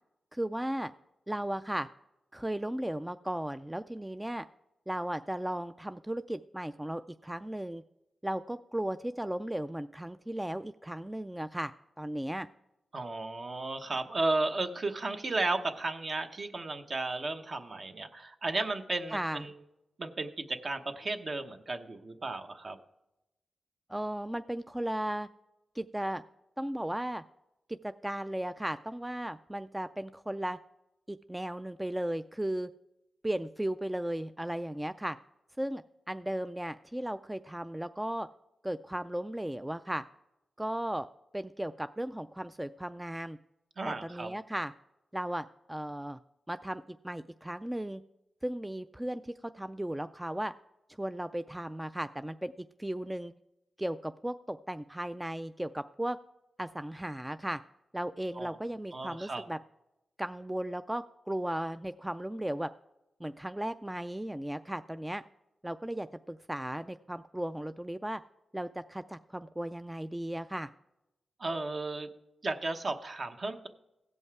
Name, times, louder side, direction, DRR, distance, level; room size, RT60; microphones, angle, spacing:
voice 1, 0.3-0.9 1.3-1.9 2.3-4.4 4.9-7.8 8.2-12.5 19.1-19.4 23.9-25.3 25.7-26.2 26.6-27.2 27.7-30.6 31.1-32.7 33.2-35.2 35.6-38.3 38.6-40.0 40.6-41.1 41.3-43.4 43.8-44.7 45.1-46.2 46.5-48.0 48.4-50.5 51.0-53.3 53.8-56.2 56.6-57.6 57.9-59.6 60.2-62.7 63.2-65.2 65.6-68.2 68.5-70.7, right 1 dB, 10° right, 11 dB, 0.3 m, -36 dB
voice 2, 12.9-19.5 20.0-22.8 43.8-44.3 58.4-58.6 58.9-59.4 71.4-72.1 72.4-73.7, right 2 dB, 45° right, 6 dB, 1.0 m, -34 dB
16.0 x 5.5 x 4.7 m, 0.92 s
cardioid pair, 75°, 0 cm